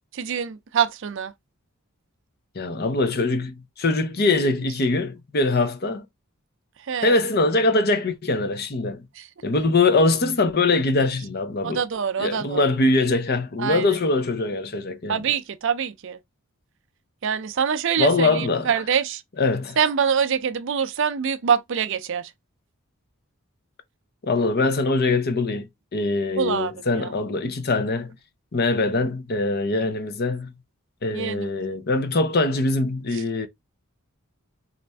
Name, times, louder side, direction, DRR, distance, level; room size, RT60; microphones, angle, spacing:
voice 1, 0.1-1.3 6.9-7.1 11.6-12.7 13.6-13.9 15.1-16.2 17.2-19.2 19.8-22.3 26.4-27.1 31.1-31.5, right 7 dB, 55° right, 0.4 m, -24 dB
voice 2, 2.6-6.0 7.0-9.1 9.4-11.8 12.2-15.2 18.0-18.7 19.4-19.8 24.2-28.1 28.5-30.5 31.0-33.5, left 3 dB, 45° left, 0.6 m, -22 dB
4.2 x 2.5 x 3.4 m
head